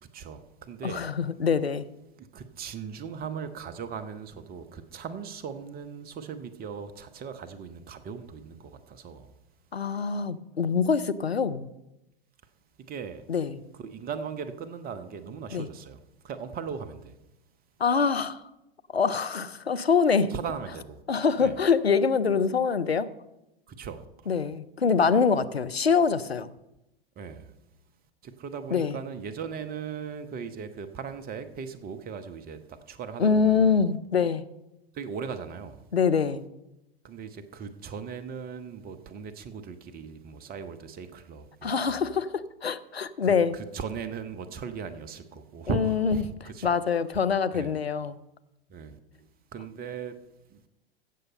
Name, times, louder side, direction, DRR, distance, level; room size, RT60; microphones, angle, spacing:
voice 1, 0.0-1.1 2.2-9.3 12.9-13.2 13.8-16.0 16.2-17.2 20.3-21.0 21.4-21.5 23.7-24.1 27.2-27.5 28.2-33.8 34.9-35.8 37.0-42.2 43.2-47.0 47.5-47.7 48.7-50.2 50.5-50.7, right 6 dB, 30° right, 1.0 m, -38 dB
voice 2, 0.8-1.9 9.7-11.7 13.3-13.6 15.5-15.7 17.8-18.4 18.9-20.3 21.1-23.1 24.3-26.5 28.7-29.0 33.2-34.5 35.9-36.4 41.6-43.6 45.7-46.3 46.6-48.2, left 5 dB, 90° left, 0.6 m, -24 dB
16.0 x 6.7 x 5.3 m
figure-of-eight pair, 90°, 30 cm